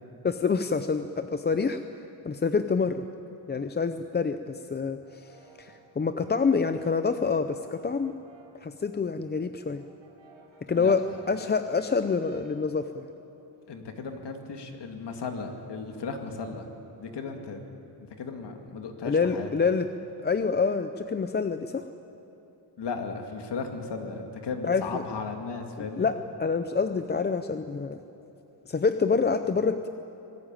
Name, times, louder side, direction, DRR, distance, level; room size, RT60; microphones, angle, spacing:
voice 1, 0.2-1.8 2.2-3.0 3.5-8.1 8.6-9.8 10.7-13.1 19.1-19.9 20.2-21.8 24.6-25.0 26.0-26.1 26.4-28.0 28.7-29.9, left 5 dB, 20° left, 9 dB, 0.6 m, -27 dB
Brass instrument, 5.0-8.7 9.0-12.7, right 4 dB, 85° right, 4.3 m, -55 dB
voice 2, 13.7-16.7 17.0-17.7 18.0-19.5 22.8-26.1, left 4 dB, 60° left, 4 dB, 2.4 m, -36 dB
25.0 x 19.0 x 9.0 m, 3.0 s
wide cardioid pair, 140°, 47 cm